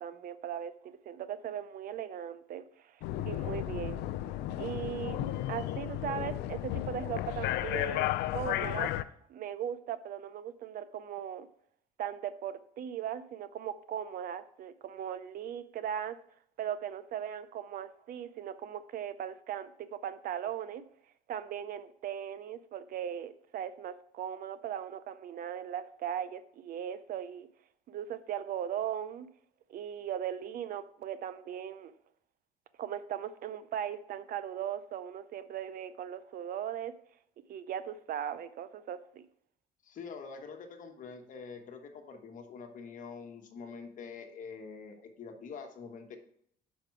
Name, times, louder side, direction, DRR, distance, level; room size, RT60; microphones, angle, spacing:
voice 1, 0.0-3.0 3.2-4.1 4.6-8.9 9.3-11.5 12.0-16.2 16.6-20.8 21.3-27.5 27.9-29.3 29.7-31.9 32.8-36.9 37.5-39.3, right 9 dB, 60° right, 0.5 m, -38 dB
sound 1, 3.0-9.0, left 14 dB, 85° left, 0.4 m, -34 dB
voice 2, 39.8-46.2, left 5 dB, 50° left, 1.2 m, -45 dB
5.8 x 5.2 x 5.8 m
cardioid pair, 110°, 17 cm